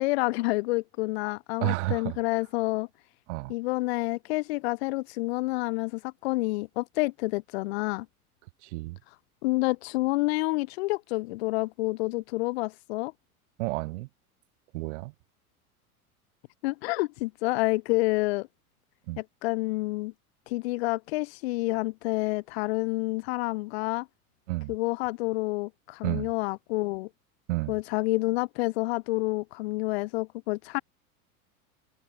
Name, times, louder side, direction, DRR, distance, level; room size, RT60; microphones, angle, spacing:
voice 1, 0.0-2.9 3.5-8.1 9.4-13.1 16.6-18.5 19.2-20.1 20.5-24.1 24.7-27.1 27.7-30.8, left 22 dB, 45° left, 0.5 m, -28 dB
voice 2, 1.6-2.2 3.3-3.5 8.6-9.0 13.6-14.1 14.7-15.1 19.1-19.2 24.5-24.7 26.0-26.3 27.5-27.7, right 22 dB, 50° right, 1.7 m, -31 dB
figure-of-eight pair, 90°, 44 cm